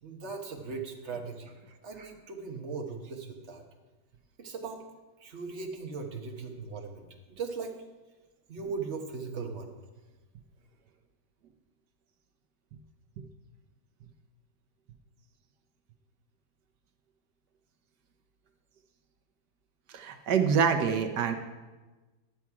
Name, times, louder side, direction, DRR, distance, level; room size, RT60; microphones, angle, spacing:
voice 1, 0.0-3.6 4.4-4.8 5.2-7.7 8.5-9.7, right 4 dB, 45° right, 2 dB, 1.3 m, -38 dB
voice 2, 19.9-21.3, right 6 dB, 75° right, 5 dB, 1.5 m, -26 dB
12.0 x 7.3 x 4.7 m, 1.2 s
omnidirectional pair, 1.8 m